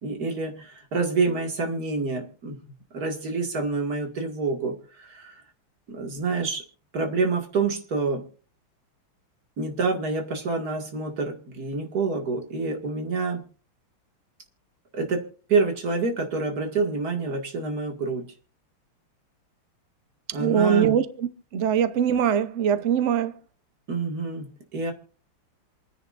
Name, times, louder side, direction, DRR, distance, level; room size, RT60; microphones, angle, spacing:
voice 1, 0.0-2.6 2.9-5.4 5.9-6.6 6.9-8.2 9.6-13.4 14.9-18.2 20.3-20.9 23.9-24.5 24.7-24.9, right 4 dB, 45° right, 2.4 m, -27 dB
voice 2, 20.4-23.3, right 8 dB, 85° right, 0.6 m, -22 dB
27.0 x 10.0 x 2.5 m
omnidirectional pair, 2.4 m